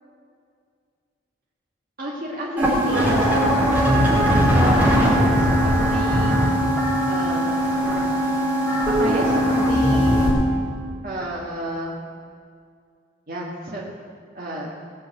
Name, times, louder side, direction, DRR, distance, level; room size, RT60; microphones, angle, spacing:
voice 1, 2.0-6.4 7.1-7.5 9.0-10.3 11.0-11.9 13.3-13.8 14.3-14.7, right 1 dB, 45° right, -4 dB, 1.9 m, -30 dB
sound 1, 2.6-10.3, equal, 10° right, 4.1 m, -19 dB
18.5 x 6.9 x 8.0 m, 2.1 s
head